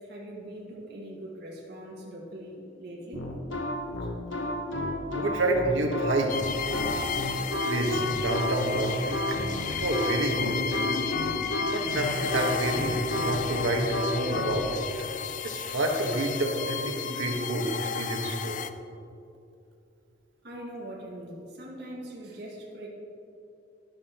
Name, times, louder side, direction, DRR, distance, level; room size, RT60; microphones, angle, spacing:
voice 1, 0.0-3.3 20.4-22.9, right 1 dB, 55° right, -4 dB, 2.0 m, -41 dB
sound 1, 3.1-14.6, left 1 dB, 70° left, 1.1 m, -31 dB
voice 2, 5.1-6.3 7.6-9.4 9.8-10.8 11.6-14.8 15.4-18.6, right 1 dB, 80° right, 1 dB, 1.5 m, -28 dB
sound 2, 6.3-18.7, left 6 dB, 40° left, 0.4 m, -33 dB
12.0 x 11.5 x 3.0 m, 2.6 s
head